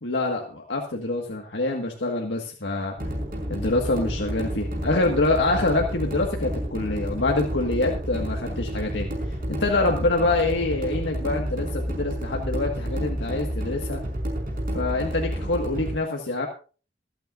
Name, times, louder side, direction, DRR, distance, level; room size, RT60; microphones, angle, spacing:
voice 1, 0.0-2.9 3.5-9.1 9.5-14.0 14.7-16.5, left 2 dB, 90° left, 1 dB, 1.7 m, -25 dB
sound 1, 3.0-16.0, equal, 55° right, 5.1 m, -30 dB
26.5 x 9.0 x 2.5 m, 0.37 s
head